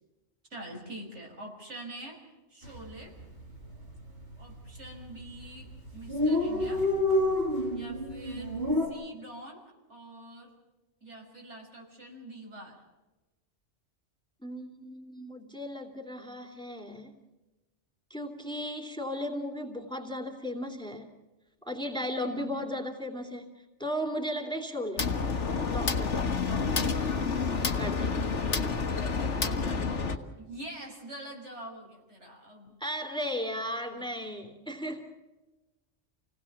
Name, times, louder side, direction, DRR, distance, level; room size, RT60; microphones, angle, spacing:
voice 1, 0.5-2.2 2.5-3.1 4.4-6.8 7.7-8.5 8.8-10.5 11.0-12.8 22.2-22.6 26.4-27.4 29.3-32.7 33.9-34.1, right 1 dB, 75° right, 0 dB, 6.3 m, -45 dB
Dog, 2.6-2.9 3.2-3.3 3.5-4.2 4.8-5.1 5.4-5.5 5.7-5.8 5.9-8.9, left 1 dB, 55° right, 5.2 m, -28 dB
voice 2, 14.4-17.2 18.1-21.1 21.6-23.5 23.8-25.1 25.7-26.3 27.8-28.2 32.8-35.1, equal, 5° left, 3 dB, 2.9 m, -35 dB
sound 1, 25.0-30.2, left 5 dB, 85° left, 1.8 m, -29 dB
29.0 x 18.0 x 7.2 m, 1.1 s
omnidirectional pair, 1.2 m